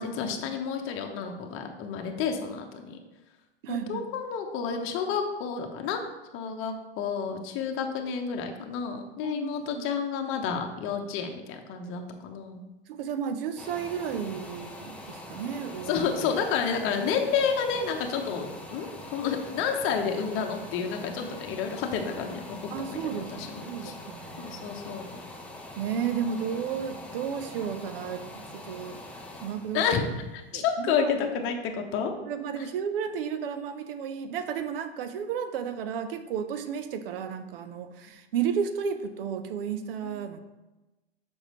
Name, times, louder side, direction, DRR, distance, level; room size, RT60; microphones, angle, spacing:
voice 1, 0.0-3.0 3.7-6.0 6.3-12.6 15.9-24.0 24.4-25.1 29.7-32.1 32.6-32.7 40.0-40.1, left 6 dB, 40° left, 4 dB, 0.9 m, -30 dB
voice 2, 3.6-4.0 9.2-9.8 12.9-16.0 22.7-24.7 25.8-29.0 29.4-29.8 30.5-31.1 32.3-40.4, right 7 dB, 60° right, 9 dB, 0.7 m, -33 dB
sound 1, 13.6-31.2 31.7-31.8, left 1 dB, 5° left, 0.7 m, -43 dB
6.4 x 5.3 x 3.1 m, 1.1 s
hypercardioid pair, 95°, 32 cm